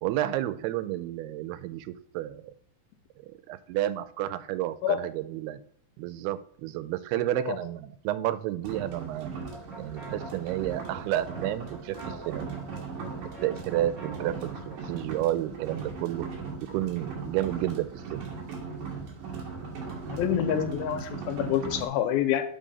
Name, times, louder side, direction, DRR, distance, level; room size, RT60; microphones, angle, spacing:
voice 1, 0.0-2.5 3.3-5.6 6.0-9.3 9.8-12.5 13.4-16.3 16.7-18.3, right 14 dB, 90° right, 15 dB, 2.6 m, -31 dB
sound 1, 8.6-21.9, right 5 dB, 65° right, 2.8 m, -38 dB
sound 2, 9.5-15.0, equal, 25° right, 1.6 m, -47 dB
voice 2, 20.1-22.4, left 10 dB, 80° left, 8 dB, 2.4 m, -27 dB
7.4 x 4.8 x 4.1 m, 0.65 s
omnidirectional pair, 4.5 m